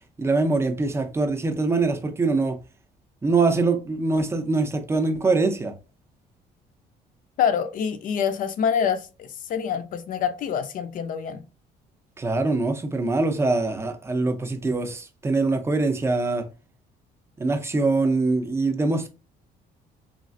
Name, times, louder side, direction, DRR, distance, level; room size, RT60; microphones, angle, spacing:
voice 1, 0.2-2.6 3.2-5.7 12.2-16.5 17.4-19.1, right 3 dB, 15° right, 0.5 m, -23 dB
voice 2, 7.4-11.4, left 7 dB, 55° left, 0.5 m, -26 dB
3.2 x 2.4 x 2.5 m
cardioid pair, 110°, 17 cm